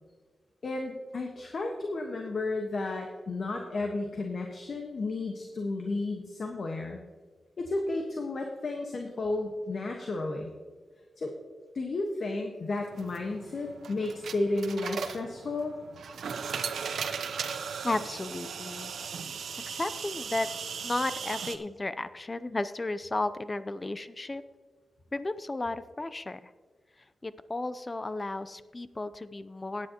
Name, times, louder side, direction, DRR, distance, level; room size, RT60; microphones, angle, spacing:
voice 1, 0.6-7.0 7.6-10.5 11.2-11.3 11.7-15.8, left 2 dB, 55° left, 2 dB, 1.3 m, -33 dB
sound 1, 12.8-21.6, right 6 dB, 90° right, 0.7 m, -37 dB
voice 2, 17.8-19.0 19.7-20.5 20.8-24.4 25.1-26.5 27.2-29.9, left 2 dB, 25° left, 13 dB, 0.6 m, -34 dB
16.5 x 9.7 x 2.9 m, 1.4 s
wide cardioid pair, 100°, 0 cm